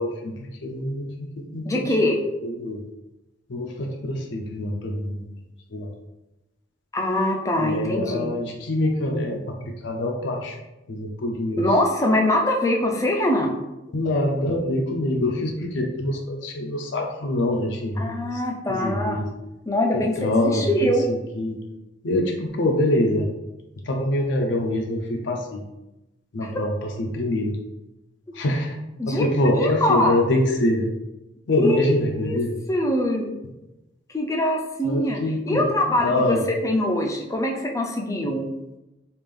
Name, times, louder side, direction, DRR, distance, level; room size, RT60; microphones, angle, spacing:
voice 1, 0.0-2.8 3.5-5.2 5.7-5.9 7.6-10.6 10.9-11.6 13.9-18.4 18.7-19.3 19.9-21.6 22.0-23.3 23.8-25.6 26.3-27.6 28.3-28.8 29.1-30.9 31.5-32.6 34.8-35.7 36.0-36.5, left 1 dB, 70° left, 2 dB, 0.5 m, -25 dB
voice 2, 1.7-2.2 6.9-8.3 11.6-13.5 18.0-19.2 19.7-21.0 29.0-29.3 29.5-30.2 31.6-32.0 32.2-32.4 32.7-33.3 34.1-35.2 35.5-38.4, left 1 dB, 15° left, 1 dB, 0.4 m, -23 dB
3.4 x 2.4 x 3.4 m, 0.96 s
head